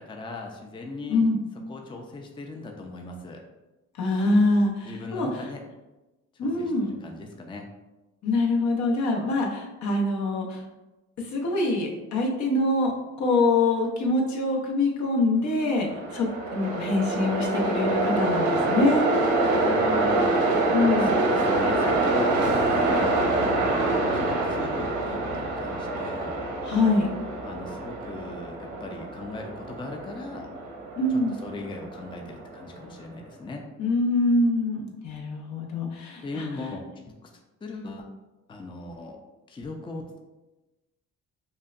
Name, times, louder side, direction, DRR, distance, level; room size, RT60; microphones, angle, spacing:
voice 1, 0.0-1.3 1.7-3.4 4.8-5.6 6.3-6.7 7.0-7.7 19.5-20.3 21.0-23.1 24.1-26.4 27.4-30.5 31.1-33.6 36.2-37.3 37.6-38.0 38.5-39.2 39.5-40.2, left 2 dB, 15° left, 2 dB, 0.5 m, -38 dB
voice 2, 4.0-5.4 6.4-6.9 8.2-10.6 11.2-12.9 13.2-16.3 16.5-19.1 20.7-21.2 26.6-27.1 31.0-31.3 33.8-36.5, left 2 dB, 65° left, -1 dB, 0.9 m, -24 dB
Train, 15.7-32.9, right 2 dB, 75° right, 1.0 m, -26 dB
5.3 x 2.2 x 2.5 m, 1.1 s
cardioid pair, 90°, 30 cm